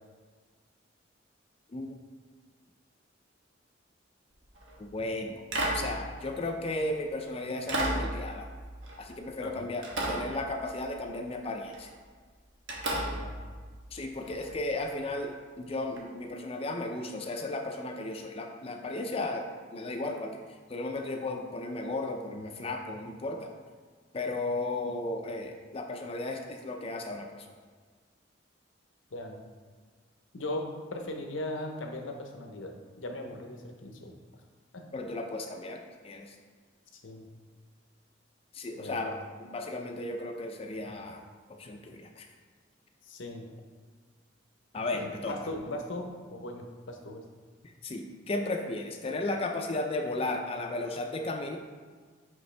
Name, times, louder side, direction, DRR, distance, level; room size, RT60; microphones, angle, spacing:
sound 1, 4.4-4.8 5.5-7.0 7.7-9.5 9.8-11.1 11.7-12.0 12.7-14.6 16.0-16.1, right 1 dB, 80° right, 1.1 m, -34 dB
voice 1, 4.8-5.4 5.7-8.5 9.0-11.9 13.9-20.4 20.7-23.5 24.1-27.5 34.9-36.4 38.5-41.2 41.5-42.3 44.7-45.4 47.8-51.6, left 2 dB, 30° left, 3 dB, 0.4 m, -35 dB
voice 2, 29.1-29.4 30.3-34.1 34.7-34.9 36.9-37.2 38.7-39.0 43.0-43.5 44.9-47.2, left 1 dB, 85° left, 3 dB, 0.8 m, -38 dB
5.9 x 5.2 x 3.3 m, 1.5 s
head